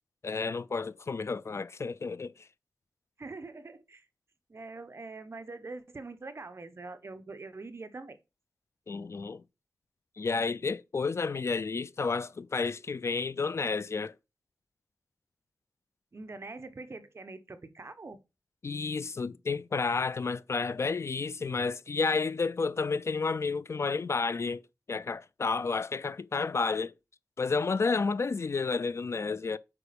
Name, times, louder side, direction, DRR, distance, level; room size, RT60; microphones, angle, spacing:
voice 1, 0.2-2.5 8.9-9.4 10.2-14.1 18.6-24.6 24.9-26.9 27.4-29.6, left 4 dB, 50° left, 0.4 m, -31 dB
voice 2, 3.2-4.1 4.5-8.2 16.1-18.2, right 3 dB, 45° right, 1.0 m, -44 dB
8.2 x 5.0 x 5.2 m
wide cardioid pair, 115°, 6 cm